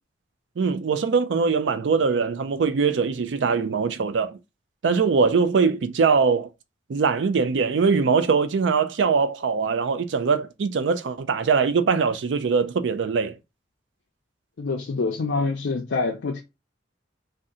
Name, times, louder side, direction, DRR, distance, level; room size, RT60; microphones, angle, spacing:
voice 1, 0.6-4.4 4.8-6.5 6.9-13.4, right 5 dB, 75° right, 0.4 m, -22 dB
voice 2, 14.6-16.4, left 3 dB, 80° left, 0.4 m, -26 dB
2.7 x 2.2 x 3.6 m
head